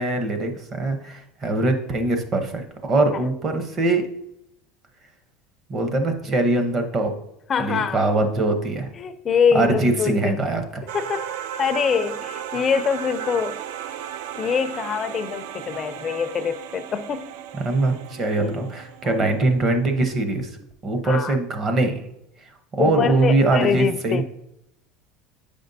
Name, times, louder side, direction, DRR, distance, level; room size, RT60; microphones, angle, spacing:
voice 1, 0.0-2.6 2.9-4.0 5.7-7.1 7.6-8.9 9.5-10.6 17.6-20.5 20.8-22.0 22.7-24.2, right 2 dB, 30° right, 0.7 m, -22 dB
voice 2, 7.5-8.1 9.0-10.4 10.9-13.6 13.9-14.0 14.4-17.4 18.4-18.7 19.0-19.2 21.0-21.4 22.8-24.2, left 6 dB, 25° left, 0.4 m, -24 dB
sound 1, 10.9-19.5, right 9 dB, 75° right, 0.3 m, -35 dB
8.1 x 5.1 x 2.6 m
cardioid pair, 155°, 0 cm